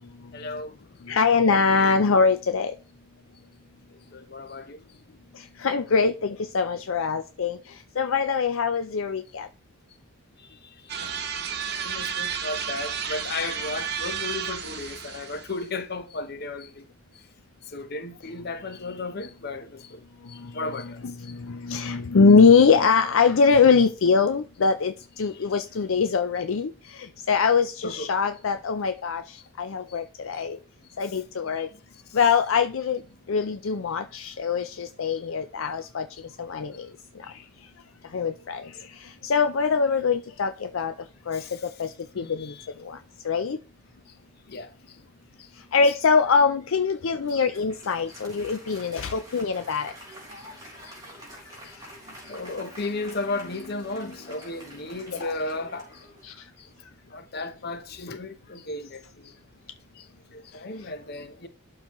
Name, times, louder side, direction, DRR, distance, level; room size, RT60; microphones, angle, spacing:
voice 1, 0.3-0.7 4.1-4.8 11.0-11.1 11.8-16.7 17.7-20.0 20.5-21.0 27.8-28.1 41.4-41.5 42.2-42.7 44.5-44.7 52.3-55.9 57.1-59.0 60.5-61.5, left 3 dB, 45° left, 0.9 m, -34 dB
voice 2, 1.0-2.8 5.3-9.5 20.2-30.6 31.0-31.7 32.1-33.0 33.3-37.4 38.0-40.9 41.3-43.6 45.5-49.9 55.1-55.3 56.2-56.5 60.8-60.9, left 5 dB, 65° left, 0.5 m, -23 dB
sound 1, 10.9-15.6, right 7 dB, 50° right, 1.0 m, -32 dB
Applause, 47.0-56.6, equal, 20° right, 3.3 m, -47 dB
11.5 x 3.9 x 3.0 m
head